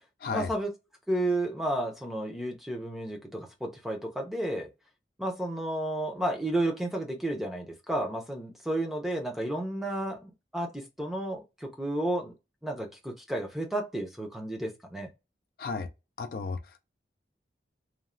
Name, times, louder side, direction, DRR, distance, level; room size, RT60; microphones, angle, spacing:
voice 1, 0.3-0.7 1.1-4.7 5.2-12.3 12.6-15.1, right 1 dB, ahead, 0.6 m, -32 dB
voice 2, 16.2-16.9, left 4 dB, 50° left, 0.3 m, -34 dB
3.1 x 2.2 x 2.4 m
head